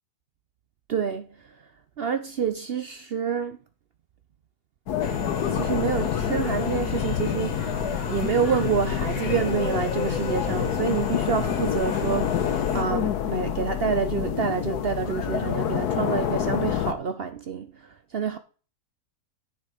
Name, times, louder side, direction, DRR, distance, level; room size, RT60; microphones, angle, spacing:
voice 1, 0.9-1.5 2.0-3.6 5.4-7.8 8.0-18.4, right 6 dB, 55° right, 0.7 m, -28 dB
sound 1, 4.9-16.9, left 9 dB, 80° left, 1.4 m, -28 dB
sound 2, 5.0-12.8, left 5 dB, 65° left, 1.8 m, -31 dB
8.7 x 6.7 x 4.9 m
omnidirectional pair, 1.7 m